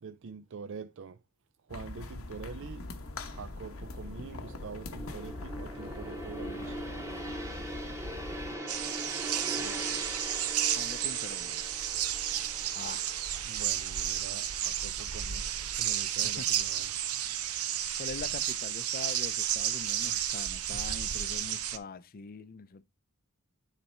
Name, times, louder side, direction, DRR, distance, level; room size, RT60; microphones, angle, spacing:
voice 1, 0.0-1.2 1.6-2.9 3.2-6.9 9.5-10.3 13.4-17.0, right 5 dB, 60° right, 0.5 m, -45 dB
sound 1, 1.7-8.6, left 2 dB, 70° left, 1.0 m, -42 dB
Gong, 2.8-15.0 15.4-15.6, right 1 dB, 15° right, 1.1 m, -42 dB
sound 2, 8.7-21.8, right 10 dB, 90° right, 0.8 m, -32 dB
voice 2, 10.8-11.6 12.7-13.2 16.2-16.5 17.5-22.8, left 4 dB, 45° left, 0.5 m, -43 dB
9.9 x 3.4 x 4.3 m
head